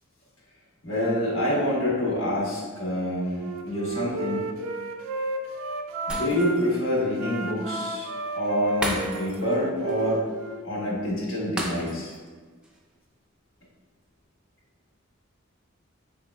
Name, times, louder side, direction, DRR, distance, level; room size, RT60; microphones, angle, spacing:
voice 1, 0.8-3.4 3.6-4.5 6.1-8.1 8.3-10.3 10.6-12.1, left 1 dB, 75° left, -5 dB, 1.2 m, -27 dB
Wind instrument woodwind instrument, 3.3-6.6 7.1-10.7, right 2 dB, 75° right, 0.4 m, -32 dB
Shatter, 6.1-6.8 7.2-7.3 8.8-9.6 9.9-10.0 11.6-12.3 12.6-12.8, right 1 dB, 5° right, 0.5 m, -33 dB
4.7 x 3.7 x 2.3 m, 1.5 s
head